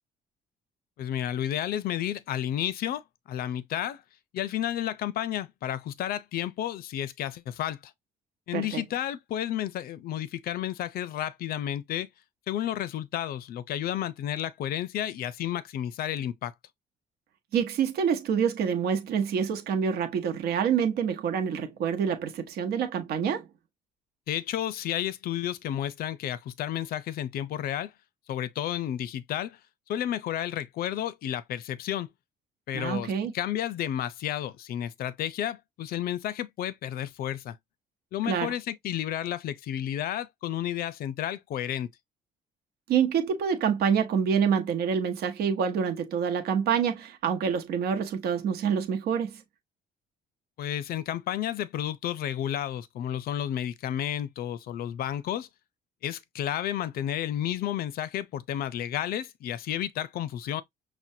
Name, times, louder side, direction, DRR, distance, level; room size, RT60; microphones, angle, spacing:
voice 1, 1.0-3.0 3.3-4.0 4.3-7.9 8.5-12.1 12.5-16.5 24.3-27.9 28.3-29.6 29.9-32.1 32.7-37.6 38.1-41.9 50.6-55.5 56.0-60.6, left 11 dB, 60° left, 0.6 m, -31 dB
voice 2, 17.5-23.5 32.7-33.3 38.3-38.5 42.9-49.4, right 7 dB, 70° right, 1.0 m, -27 dB
5.9 x 2.3 x 2.7 m
cardioid pair, 110°, 17 cm